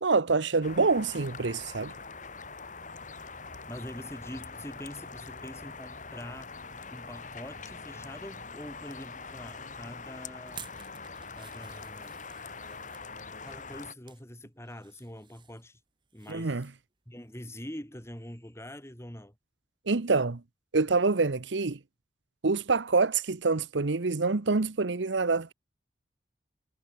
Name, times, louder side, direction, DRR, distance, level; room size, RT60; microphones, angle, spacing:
voice 1, 0.0-1.9 16.3-16.7 19.9-20.4 20.7-21.8 22.4-25.5, right 4 dB, 75° right, 0.9 m, -26 dB
sound 1, 0.6-13.9, left 4 dB, 45° left, 5.3 m, -43 dB
voice 2, 3.7-6.5 6.9-10.7 11.4-12.2 13.4-15.8 16.1-16.6 17.1-19.3, left 1 dB, 15° left, 4.6 m, -44 dB
sound 2, 10.4-13.1 13.7-14.2 14.6-16.3 16.6-16.8 17.2-17.3, right 8 dB, 25° right, 2.9 m, -51 dB
head